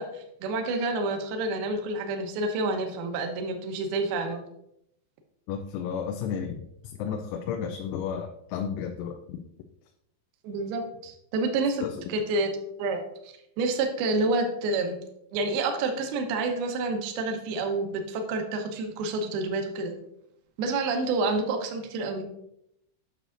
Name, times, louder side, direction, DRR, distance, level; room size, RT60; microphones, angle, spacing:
voice 1, 0.0-4.4 10.4-12.5 12.8-15.0 15.3-19.9 20.6-22.2, right 3 dB, 75° right, 4 dB, 2.5 m, -29 dB
voice 2, 5.5-6.6 7.0-9.4 11.8-11.9, left 7 dB, 90° left, 4 dB, 3.0 m, -32 dB
9.2 x 6.4 x 2.5 m, 0.78 s
omnidirectional pair, 5.4 m